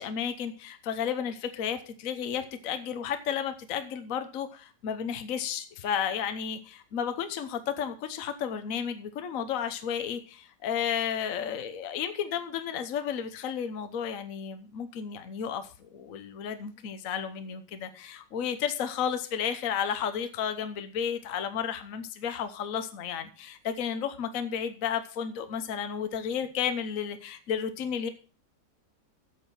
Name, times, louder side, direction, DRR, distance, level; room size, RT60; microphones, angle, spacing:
voice 1, 0.0-28.1, left 8 dB, 55° left, 9 dB, 1.3 m, -32 dB
8.5 x 7.3 x 7.3 m, 0.37 s
omnidirectional pair, 1.9 m